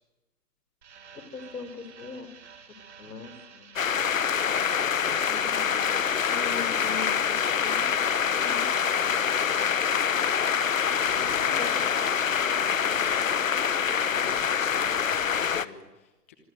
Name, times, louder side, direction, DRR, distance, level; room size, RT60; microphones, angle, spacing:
sound 1, 0.8-15.6, right 6 dB, 45° right, 4.7 m, -50 dB
voice 1, 1.1-2.3 3.0-3.7 5.3-5.8 6.3-8.7 11.6-11.7, left 5 dB, 80° left, 11 dB, 5.2 m, -41 dB
sound 2, 3.8-15.7, left 7 dB, 55° left, 1.3 m, -25 dB
voice 2, 6.4-6.7 11.0-16.4, left 5 dB, 10° left, 6 dB, 1.0 m, -46 dB
26.5 x 22.0 x 9.2 m, 1.0 s
hypercardioid pair, 175°, 47 cm